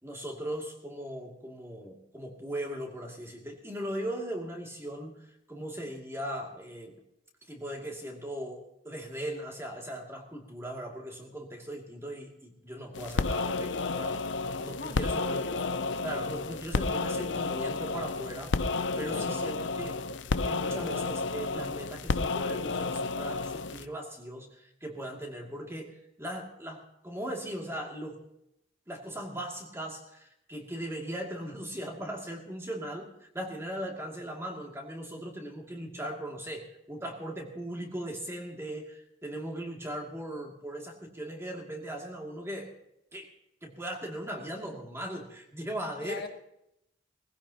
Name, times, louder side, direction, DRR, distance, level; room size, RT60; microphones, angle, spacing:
voice 1, 0.0-7.0 7.4-14.3 14.6-15.4 16.0-20.0 20.4-28.2 28.9-42.7 43.1-43.3 43.6-46.2, right 1 dB, 15° right, 0 dB, 2.6 m, -39 dB
sound 1, 12.9-23.8, left 3 dB, 75° left, 0.7 m, -31 dB
voice 2, 14.7-16.0 19.1-20.2 46.0-46.3, left 2 dB, 60° left, 5 dB, 1.5 m, -41 dB
20.0 x 16.0 x 2.9 m, 0.82 s
head